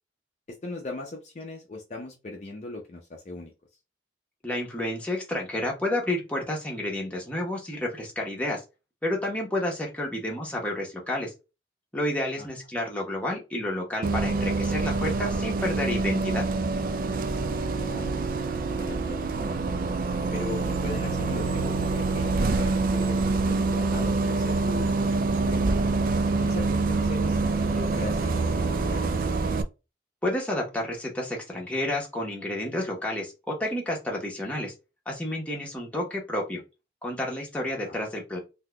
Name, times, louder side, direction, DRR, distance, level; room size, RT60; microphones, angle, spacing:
voice 1, 0.5-3.5 12.4-12.5 17.8-18.4 18.8-19.6 20.3-25.8 26.4-29.2 37.8-37.9, left 2 dB, 40° left, 1 dB, 0.5 m, -39 dB
voice 2, 4.4-8.6 9.0-11.3 11.9-16.4 30.2-34.7 35.1-36.6 37.0-38.4, left 1 dB, 10° left, -2 dB, 0.9 m, -30 dB
Bus, 14.0-29.6, right 3 dB, 50° right, 0.3 m, -26 dB
3.6 x 2.7 x 2.2 m, 0.27 s
head